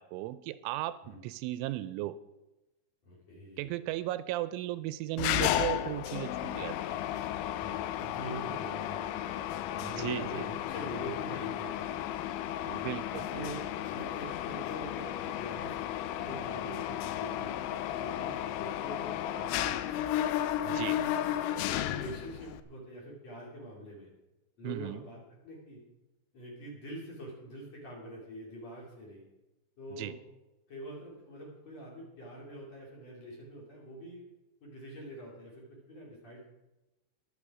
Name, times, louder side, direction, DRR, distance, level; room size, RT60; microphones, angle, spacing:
voice 1, 0.0-2.2 3.6-6.7 9.8-10.5 12.7-13.4 20.6-21.0 24.6-25.0 30.0-30.1, right 15 dB, 85° right, 14 dB, 2.9 m, -36 dB
voice 2, 3.0-3.7 7.6-9.5 9.9-12.3 13.1-13.6 13.9-15.8 16.1-19.9 20.6-24.1 24.6-25.8 26.3-29.2 29.8-30.2 30.7-34.2 34.6-36.5, equal, 40° left, -3 dB, 3.3 m, -44 dB
Mechanisms, 5.2-22.6, left 12 dB, 85° left, 3.1 m, -34 dB
22.0 x 7.4 x 4.8 m, 1.0 s
omnidirectional pair, 5.6 m